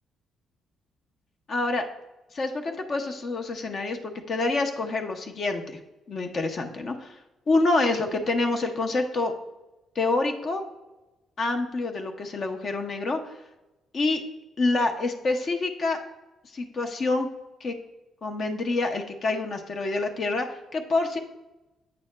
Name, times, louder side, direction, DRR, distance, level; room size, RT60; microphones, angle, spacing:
voice 1, 1.5-1.9 2.3-5.8 6.1-7.2 7.5-9.3 10.0-10.6 11.4-13.4 13.9-14.2 14.6-16.0 16.5-17.3 17.6-17.7 18.2-21.2, left 3 dB, 50° left, 4 dB, 0.7 m, -27 dB
8.5 x 6.0 x 2.2 m, 1.0 s
cardioid pair, 90°, 0 cm